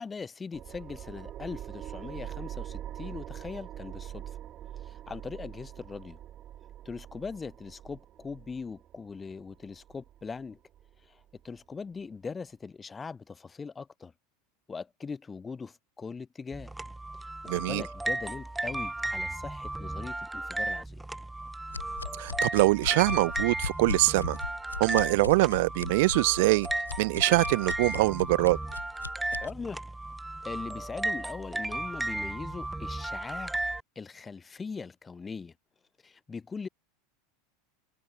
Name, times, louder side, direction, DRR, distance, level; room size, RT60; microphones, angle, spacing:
voice 1, 0.0-4.2 4.8-6.2 6.8-10.6 11.1-11.2 11.4-14.1 14.7-16.7 17.2-21.0 29.4-29.8 30.4-33.6 34.0-35.5 36.0-36.7, left 5 dB, 20° left, 4.2 m, -40 dB
sound 1, 0.5-11.6, right 11 dB, 35° right, 4.2 m, -44 dB
sound 2, 16.5-33.8, right 2 dB, 5° right, 2.0 m, -35 dB
voice 2, 17.5-17.8 22.2-24.4 24.8-26.7 27.0-28.6, right 22 dB, 55° right, 0.5 m, -24 dB
sound 3, 21.7-29.5, left 5 dB, 80° left, 1.5 m, -39 dB
figure-of-eight pair, 80°, 0 cm